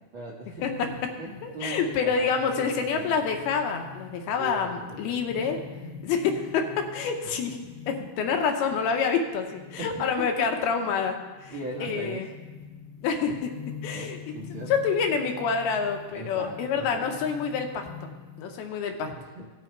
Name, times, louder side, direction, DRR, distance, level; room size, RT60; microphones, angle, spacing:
voice 1, 0.1-3.3 4.4-5.3 8.2-8.3 9.8-10.5 11.5-12.3 13.9-14.8 16.1-17.2 19.1-19.5, right 1 dB, 80° right, -3 dB, 1.1 m, -39 dB
sound 1, 0.6-18.6, left 5 dB, 70° left, 3.4 m, -45 dB
voice 2, 1.4-5.6 6.0-7.6 7.9-11.5 11.8-12.3 13.0-13.5 13.8-14.2 14.7-18.1 18.4-19.1, left 6 dB, 85° left, 4 dB, 2.9 m, -27 dB
17.0 x 6.2 x 4.5 m, 1.2 s
omnidirectional pair, 4.4 m